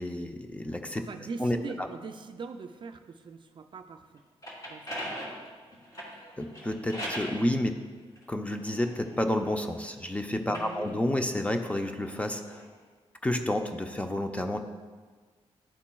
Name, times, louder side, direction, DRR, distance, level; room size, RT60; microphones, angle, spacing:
voice 1, 0.0-1.0 1.4-1.9 6.4-7.8 8.3-12.6 13.2-14.6, left 1 dB, 10° left, 6 dB, 0.4 m, -30 dB
voice 2, 1.0-4.2 4.7-5.2 10.5-11.1, right 4 dB, 45° right, 7 dB, 0.4 m, -42 dB
sound 1, 4.2-7.4 8.2-9.8 10.4-12.7, equal, 35° left, 1.8 m, -41 dB
11.0 x 4.2 x 2.3 m, 1.4 s
cardioid pair, 105°, 11 cm